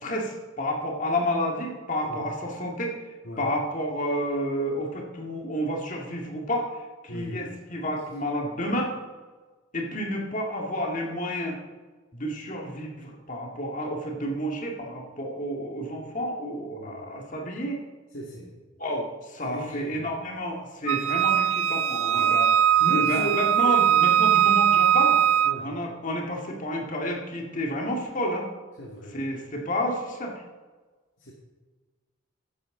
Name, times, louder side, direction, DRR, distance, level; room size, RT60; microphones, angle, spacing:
voice 1, 0.0-2.9 3.4-6.7 7.0-8.9 9.7-11.6 12.1-17.8 18.8-22.5 22.9-25.2 25.6-28.5 29.1-30.3, equal, 40° left, 0 dB, 1.9 m, -30 dB
voice 2, 7.1-7.6 16.7-17.1 18.1-18.6 19.4-20.3 22.1-22.3 22.8-23.6 25.4-25.7 28.8-29.3 31.2-31.3, equal, 70° left, -2 dB, 1.9 m, -35 dB
Wind instrument woodwind instrument, 20.9-25.6, right 10 dB, 90° right, 0.5 m, -21 dB
14.0 x 10.5 x 3.8 m, 1.4 s
head